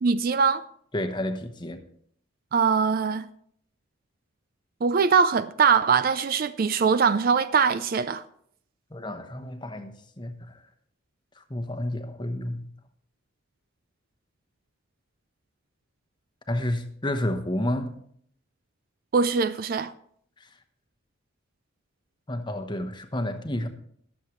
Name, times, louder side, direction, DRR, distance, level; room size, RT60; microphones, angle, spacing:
voice 1, 0.0-0.6 2.5-3.2 4.8-8.2 19.1-19.9, right 5 dB, 45° right, 0.3 m, -22 dB
voice 2, 0.9-1.8 8.9-10.6 11.5-12.7 16.5-18.0 22.3-23.7, left 1 dB, 20° left, 0.9 m, -30 dB
21.5 x 7.4 x 3.1 m
head